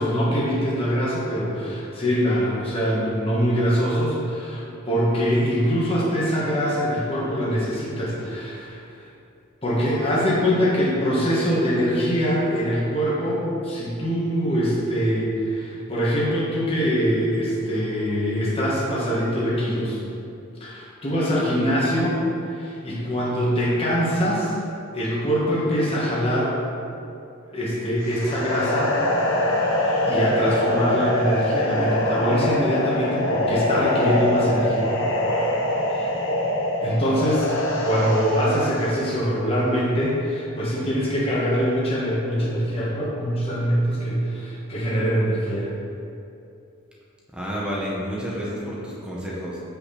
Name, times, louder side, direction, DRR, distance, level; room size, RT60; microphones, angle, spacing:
voice 1, 0.0-8.8 9.6-20.0 20.6-22.2 22.5-24.5 24.9-26.6 27.5-28.9 30.1-34.9 35.9-36.1 36.8-37.6 37.8-45.7, equal, 25° left, -6 dB, 1.4 m, -23 dB
sound 1, 28.0-39.2, left 1 dB, 65° left, 1.1 m, -24 dB
voice 2, 47.3-49.6, equal, 5° right, -6 dB, 1.2 m, -30 dB
7.8 x 6.0 x 4.2 m, 2.7 s
head